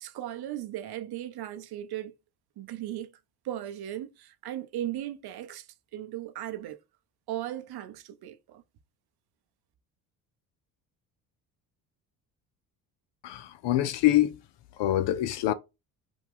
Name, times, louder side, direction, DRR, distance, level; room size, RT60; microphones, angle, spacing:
voice 1, 0.0-2.1 2.6-3.1 3.4-5.7 5.9-6.8 7.3-8.6, right 12 dB, 55° right, 0.7 m, -37 dB
voice 2, 13.2-14.4 14.8-15.5, left 13 dB, 65° left, 0.7 m, -25 dB
5.0 x 2.3 x 3.6 m
hypercardioid pair, 60°, 46 cm